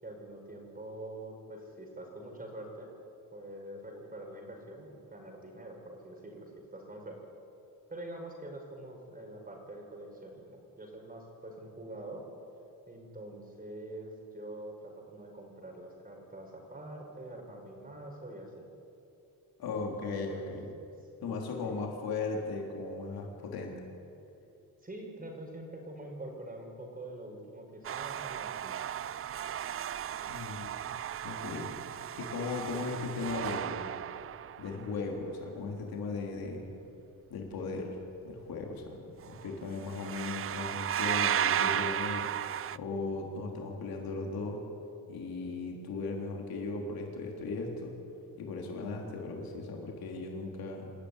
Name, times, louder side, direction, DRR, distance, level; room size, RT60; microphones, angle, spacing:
voice 1, 0.0-2.9 3.3-7.2 7.9-12.3 12.9-18.7 19.7-20.5 21.2-21.9 24.8-28.7, right 1 dB, 25° right, 1 dB, 5.3 m, -45 dB
voice 2, 19.6-20.7 21.2-23.8 30.3-30.9 31.2-31.7 32.2-33.8 34.6-36.7 37.3-38.0 38.2-42.3 42.7-44.6 45.1-47.9 48.4-50.9, left 3 dB, 85° left, 0 dB, 3.5 m, -37 dB
sound 1, 27.8-35.0 39.2-39.5 39.7-42.8, right 10 dB, 40° right, 0.4 m, -34 dB
27.0 x 13.5 x 9.8 m, 2.7 s
cardioid pair, 120°, 35 cm